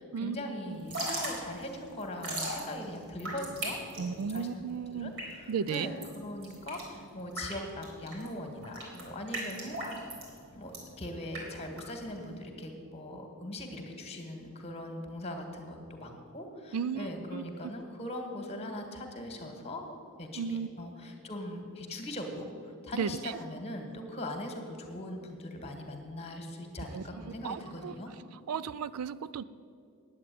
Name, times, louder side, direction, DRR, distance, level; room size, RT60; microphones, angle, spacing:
voice 1, 0.0-4.7 4.9-9.8 10.5-22.5 22.8-28.1, left 1 dB, 30° left, 4 dB, 1.7 m, -40 dB
Drip / Trickle dribble, 0.7-12.3, right 1 dB, 65° right, 3.9 m, -39 dB
voice 2, 4.0-5.1 5.5-5.9 16.7-17.4 20.4-20.7 22.9-23.4 26.9-27.9 28.5-29.4, right 6 dB, 85° right, 16 dB, 0.4 m, -34 dB
9.5 x 8.7 x 9.2 m, 2.4 s
head